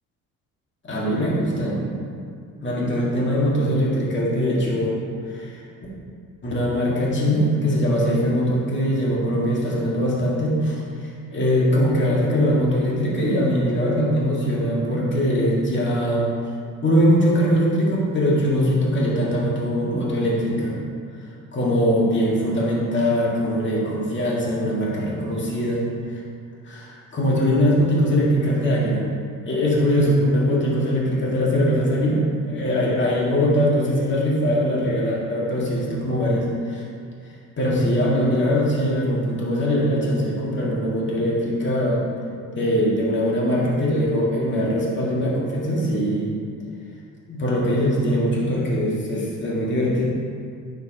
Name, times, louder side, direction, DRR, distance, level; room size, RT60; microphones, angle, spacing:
voice 1, 0.8-1.8 2.6-5.0 5.3-5.6 6.4-16.3 16.8-20.7 21.5-25.8 26.1-26.2 26.7-29.0 29.4-36.8 37.6-42.0 42.5-46.3 47.3-50.0, equal, 35° left, -5 dB, 2.0 m, -21 dB
9.2 x 7.0 x 3.0 m, 2.2 s
cardioid pair, 95°, 33 cm